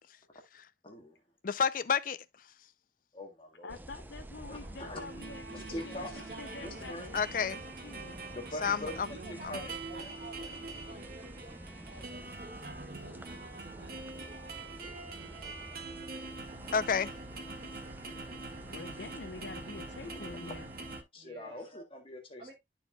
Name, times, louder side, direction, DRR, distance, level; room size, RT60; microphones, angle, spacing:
voice 1, 0.8-1.1 3.1-3.8 4.5-5.0 5.5-6.2 6.6-7.1 8.3-9.2 9.5-10.1 20.1-20.6 21.1-22.5, left 1 dB, 30° left, 1.7 m, -43 dB
voice 2, 1.4-2.2 7.1-7.6 8.6-9.1 16.7-17.1, left 6 dB, 50° left, 0.4 m, -29 dB
voice 3, 3.6-8.2 18.7-20.7, left 3 dB, 75° left, 0.8 m, -47 dB
sound 1, 3.7-21.0, right 1 dB, 10° right, 0.5 m, -49 dB
sound 2, 4.5-21.0, right 3 dB, 55° right, 1.8 m, -45 dB
voice 4, 5.5-6.9 7.3-7.6 8.9-14.4 21.2-21.7 22.4-22.5, right 1 dB, 35° right, 1.8 m, -52 dB
13.0 x 4.7 x 2.3 m
head